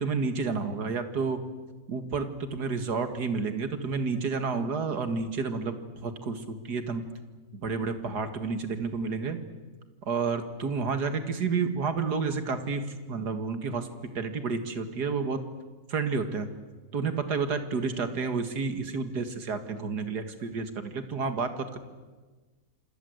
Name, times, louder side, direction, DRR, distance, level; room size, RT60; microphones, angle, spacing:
voice 1, 0.0-1.4 1.9-7.0 7.5-9.4 10.1-13.9 14.1-15.4 15.9-16.5 16.9-21.7, right 4 dB, 85° right, 9 dB, 2.5 m, -30 dB
27.5 x 26.0 x 8.0 m, 1.3 s
omnidirectional pair, 1.7 m